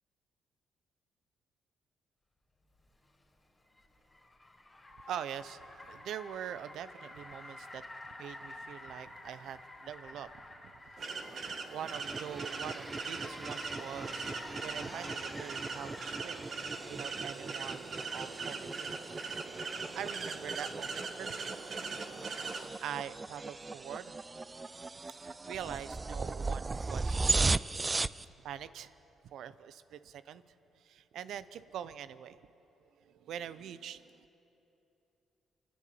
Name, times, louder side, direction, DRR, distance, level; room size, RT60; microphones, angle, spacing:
Car, 2.9-16.8, left 1 dB, 20° left, 3.7 m, -50 dB
voice 1, 5.0-10.5 11.7-18.9 19.9-21.4 22.8-24.1 25.2-27.7 28.2-28.9 29.2-30.4 30.8-32.4 33.0-34.2, right 9 dB, 75° right, 14 dB, 0.7 m, -44 dB
sound 1, 11.0-22.7, right 4 dB, 50° right, 1.6 m, -41 dB
sound 2, 11.9-28.2, right 3 dB, 25° right, 0.4 m, -38 dB
29.0 x 10.5 x 8.7 m, 3.0 s
cardioid pair, 90°, 0 cm